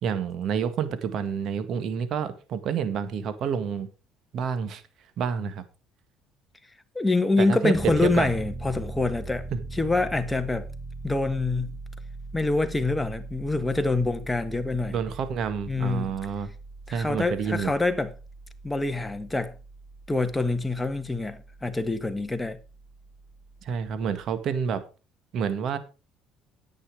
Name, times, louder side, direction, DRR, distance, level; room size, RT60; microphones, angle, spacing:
voice 1, 0.0-3.9 4.3-4.8 5.2-5.6 7.4-8.3 9.5-9.6 14.9-16.5 16.9-17.7 23.6-24.8 25.3-25.8, right 7 dB, 60° right, 1.8 m, -28 dB
voice 2, 6.9-10.7 11.0-11.8 12.3-15.0 15.7-16.1 16.9-18.1 18.6-19.6 20.1-22.6, left 3 dB, 10° left, 1.5 m, -26 dB
Piano, 7.7-24.4, right 2 dB, 10° right, 2.3 m, -41 dB
10.5 x 8.6 x 4.9 m
supercardioid pair, 90°, 0 cm